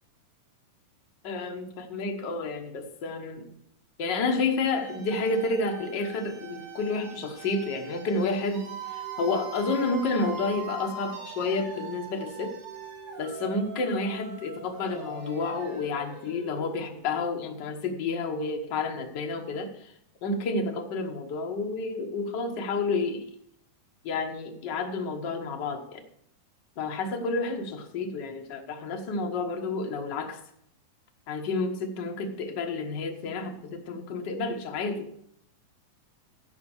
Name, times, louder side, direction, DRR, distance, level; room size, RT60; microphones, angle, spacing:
voice 1, 1.2-3.5 4.0-8.6 8.9-12.6 13.2-19.9 20.2-23.3 24.0-26.0 26.8-30.4 31.3-35.1, left 3 dB, 75° left, 3 dB, 1.0 m, -30 dB
sound 1, 4.7-17.5, right 5 dB, 70° right, 4.0 m, -42 dB
13.0 x 5.4 x 7.1 m, 0.71 s
omnidirectional pair, 3.9 m